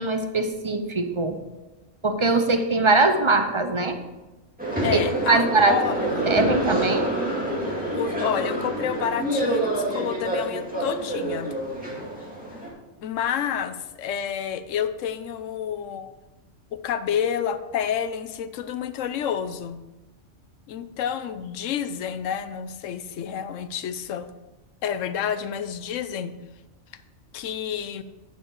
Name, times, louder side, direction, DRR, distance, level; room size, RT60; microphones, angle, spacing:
voice 1, 0.0-1.4 2.0-4.0 4.9-5.0 5.3-7.1, right 3 dB, 30° right, 6 dB, 0.7 m, -22 dB
sound 1, 4.6-12.7, right 1 dB, 5° right, 2.1 m, -27 dB
voice 2, 4.8-6.1 7.9-11.5 13.0-16.1 16.7-19.8 20.7-24.3 24.8-26.3 27.3-28.0, left 8 dB, 80° left, 12 dB, 1.0 m, -29 dB
9.3 x 6.9 x 4.7 m, 1.1 s
omnidirectional pair, 1.3 m